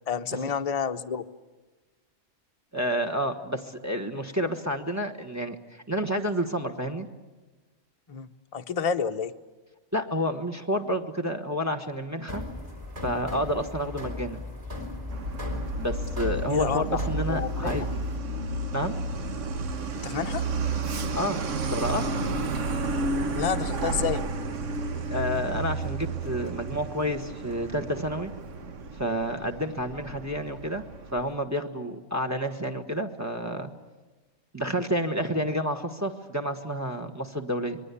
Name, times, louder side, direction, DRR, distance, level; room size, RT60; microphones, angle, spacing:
voice 1, 0.1-1.3 8.1-9.3 16.5-17.0 17.3-17.7 20.0-20.4 23.3-24.2, left 6 dB, 35° left, 6 dB, 0.8 m, -29 dB
voice 2, 2.7-7.1 9.9-12.4 13.0-14.4 15.8-17.8 18.7-19.0 21.1-21.4 21.7-22.1 25.1-28.3 29.0-30.8 31.1-33.7 34.5-37.8, equal, 15° right, 3 dB, 1.4 m, -29 dB
sound 1, 12.3-18.2, left 2 dB, 30° right, 4.2 m, -37 dB
Truck, 15.1-31.3, right 3 dB, 70° right, 1.5 m, -32 dB
26.5 x 21.0 x 8.4 m, 1.2 s
omnidirectional pair, 1.3 m